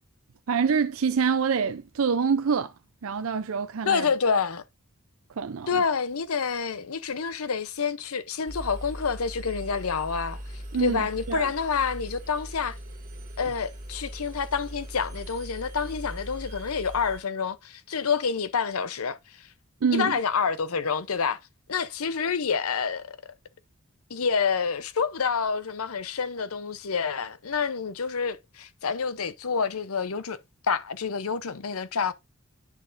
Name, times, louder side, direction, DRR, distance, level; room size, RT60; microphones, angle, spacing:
voice 1, 0.5-2.7 3.0-4.1 5.4-5.8 10.7-11.5 19.8-20.2, right 6 dB, 70° right, 0.5 m, -26 dB
voice 2, 3.8-4.6 5.7-12.8 13.4-19.5 19.9-21.4 21.7-23.2 24.1-30.4 30.7-32.1, left 5 dB, 80° left, 0.7 m, -28 dB
Engine, 8.5-17.2, equal, 35° right, 2.0 m, -40 dB
9.8 x 6.3 x 2.6 m
head